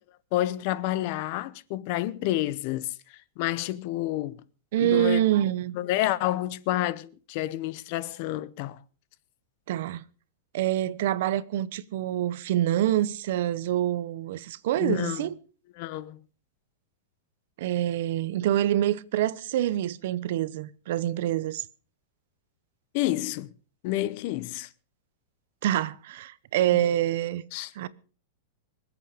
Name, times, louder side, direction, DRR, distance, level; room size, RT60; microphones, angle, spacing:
voice 1, 0.3-2.9 3.4-4.4 4.8-5.2 5.7-8.8 14.8-15.3 15.8-16.2 22.9-23.5 23.8-24.7 27.5-27.7, left 15 dB, 40° left, 0.7 m, -29 dB
voice 2, 4.7-5.7 9.7-10.0 10.5-15.4 17.6-21.6 25.6-27.4 27.7-27.9, right 12 dB, 55° right, 0.8 m, -26 dB
25.0 x 8.4 x 5.1 m
supercardioid pair, 170°, 0 cm